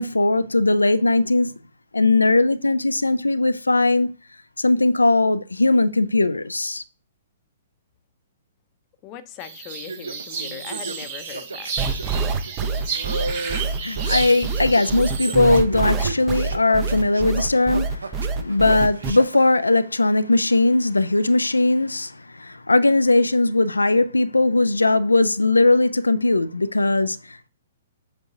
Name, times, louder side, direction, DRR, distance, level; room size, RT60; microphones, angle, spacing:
voice 1, 0.0-1.5 1.9-4.1 4.6-6.8 13.4-27.5, left 2 dB, 80° left, 0.3 m, -19 dB
voice 2, 9.0-11.7, left 10 dB, 30° left, 0.7 m, -39 dB
sound 1, 9.4-15.4, right 6 dB, 45° right, 1.7 m, -32 dB
sound 2, 9.7-19.4, right 3 dB, 70° right, 0.6 m, -34 dB
sound 3, 11.8-19.1, right 4 dB, 20° right, 0.7 m, -25 dB
8.0 x 4.6 x 2.7 m
figure-of-eight pair, 115°, 0 cm